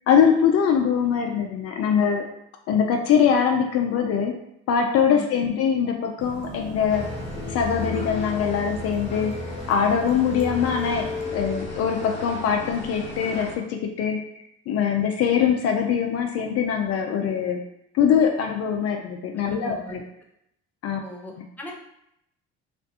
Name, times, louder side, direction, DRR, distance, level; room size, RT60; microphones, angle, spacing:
voice 1, 0.1-2.2 2.7-4.3 4.7-7.1 7.5-9.3 9.7-11.1 11.3-14.2 14.7-17.6 17.9-20.0 20.8-21.0, left 7 dB, 55° left, 3 dB, 0.4 m, -22 dB
voice 2, 5.1-5.5 19.4-20.0 21.0-21.7, left 1 dB, 5° left, -1 dB, 0.5 m, -37 dB
sound 1, 6.2-11.2, right 4 dB, 40° right, 0.6 m, -40 dB
sound 2, 6.9-13.5, left 3 dB, 20° left, 0.8 m, -33 dB
2.5 x 2.2 x 2.7 m, 0.76 s
supercardioid pair, 70°, 30 cm